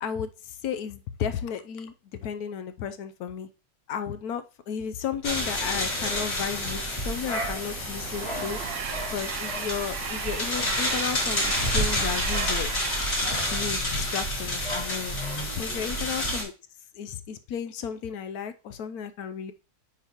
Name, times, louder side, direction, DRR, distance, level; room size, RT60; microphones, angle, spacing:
voice 1, 0.0-3.5 3.9-8.6 9.1-12.7 13.5-15.2 15.6-16.5 16.9-19.5, left 7 dB, 65° left, 10 dB, 1.0 m, -33 dB
sound 1, 5.2-16.4, left 1 dB, 40° left, 2.6 m, -29 dB
Train, 7.0-14.5, right 9 dB, 80° right, 1.4 m, -37 dB
8.6 x 5.2 x 2.9 m, 0.31 s
omnidirectional pair, 2.0 m